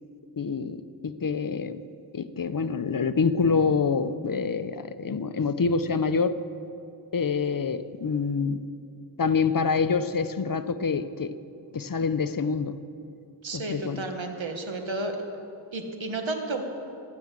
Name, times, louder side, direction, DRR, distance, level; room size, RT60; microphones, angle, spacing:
voice 1, 0.4-1.8 2.1-6.3 7.1-8.6 9.2-11.3 11.7-12.8 13.5-14.0, left 5 dB, 50° left, 12 dB, 0.7 m, -26 dB
voice 2, 13.4-15.2 15.7-16.6, right 2 dB, 85° right, 4 dB, 1.5 m, -32 dB
14.5 x 10.5 x 7.5 m, 2.6 s
wide cardioid pair, 60°, 45 cm